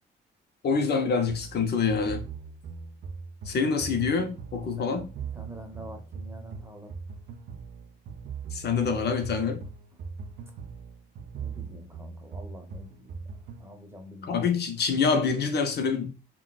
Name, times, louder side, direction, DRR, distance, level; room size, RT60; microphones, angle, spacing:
voice 1, 0.6-2.3 3.5-5.1 8.5-9.6 14.2-16.1, left 5 dB, 55° left, 0.6 m, -26 dB
sound 1, 1.3-13.7, right 5 dB, 60° right, 0.5 m, -41 dB
voice 2, 4.7-5.0 5.3-6.9 11.4-13.2 13.6-14.4, right 1 dB, 10° right, 0.7 m, -45 dB
3.7 x 2.2 x 2.3 m
cardioid pair, 90°, 20 cm